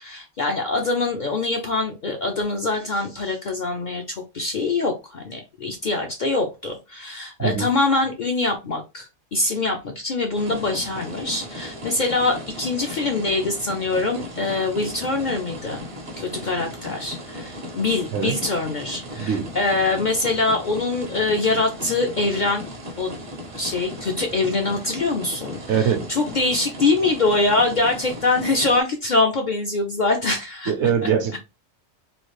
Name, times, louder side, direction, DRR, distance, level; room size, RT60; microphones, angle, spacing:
voice 1, 0.0-15.8 16.2-22.7 23.0-23.1 23.6-30.7 31.3-31.4, left 3 dB, 55° left, 0.5 m, -24 dB
voice 2, 7.4-7.7 18.1-18.4 19.2-19.5 25.7-26.1 30.7-31.4, right 7 dB, 70° right, 0.9 m, -22 dB
sound 1, 10.3-28.8, equal, 40° right, 0.5 m, -36 dB
3.1 x 2.4 x 3.1 m
omnidirectional pair, 1.3 m